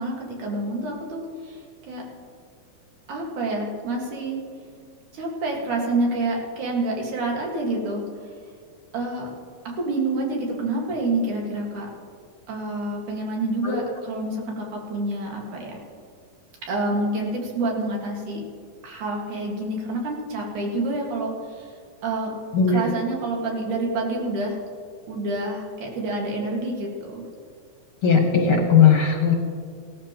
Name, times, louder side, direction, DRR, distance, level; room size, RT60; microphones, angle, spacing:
voice 1, 0.0-2.0 3.1-4.4 5.1-8.0 8.9-9.3 9.6-11.9 12.5-15.8 16.7-18.4 18.8-21.7 22.0-22.3 22.7-24.6 25.1-27.2, right 2 dB, 85° right, -1 dB, 3.4 m, -28 dB
voice 2, 22.5-22.9 28.0-29.3, left 6 dB, 60° left, 1 dB, 1.6 m, -18 dB
17.0 x 12.5 x 3.0 m, 2.1 s
omnidirectional pair, 3.4 m